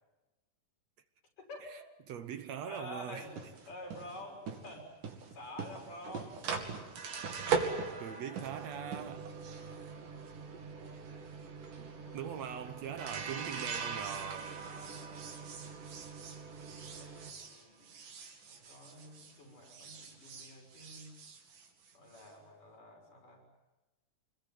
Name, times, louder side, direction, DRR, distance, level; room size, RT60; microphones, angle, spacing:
voice 1, 1.4-1.7 2.7-3.4 3.7-4.9 5.3-6.4 7.4-8.4 9.5-11.1 12.0-12.3 14.6-15.5 16.6-17.9 18.5-21.1 21.9-23.4, left 1 dB, 80° left, 7.9 m, -50 dB
voice 2, 2.1-3.3 8.0-9.3 11.8-11.9 12.1-14.6, right 8 dB, 65° right, 2.1 m, -41 dB
sound 1, 3.2-19.4 19.6-22.3, right 5 dB, 85° right, 4.1 m, -41 dB
26.0 x 21.5 x 9.4 m
omnidirectional pair, 3.6 m